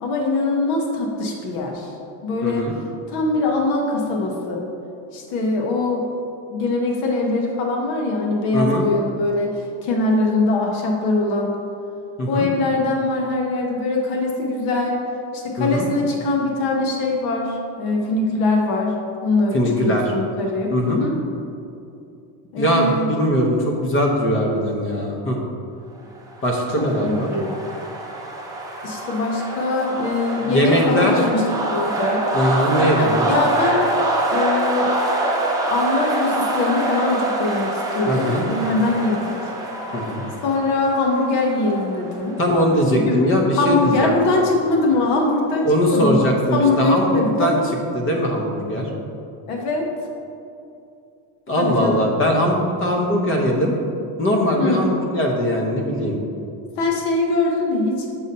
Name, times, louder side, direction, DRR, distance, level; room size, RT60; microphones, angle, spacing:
voice 1, 0.0-1.9 2.2-2.7 3.1-4.6 5.1-6.0 6.5-9.6 9.8-11.5 12.3-15.0 15.3-19.0 19.2-21.1 22.5-23.1 27.0-27.5 28.8-31.4 31.7-32.2 33.0-33.8 34.3-34.9 35.7-39.3 40.4-42.4 43.0-43.2 43.6-47.7 49.5-49.9 51.6-52.0 54.6-54.9 56.8-58.1, left 2 dB, 80° left, 0 dB, 1.1 m, -22 dB
voice 2, 2.4-2.7 8.5-8.9 12.2-12.5 15.6-15.9 19.5-20.1 20.7-21.0 22.6-25.4 26.4-27.3 30.4-31.2 32.3-33.3 38.1-38.4 39.9-40.2 42.4-44.1 45.6-47.6 47.9-48.9 51.5-53.8 54.2-56.2, equal, 30° left, 0 dB, 0.7 m, -20 dB
sound 1, 26.3-42.9, right 2 dB, 10° right, 0.5 m, -25 dB
7.0 x 2.7 x 5.3 m, 2.6 s
cardioid pair, 155°, 46 cm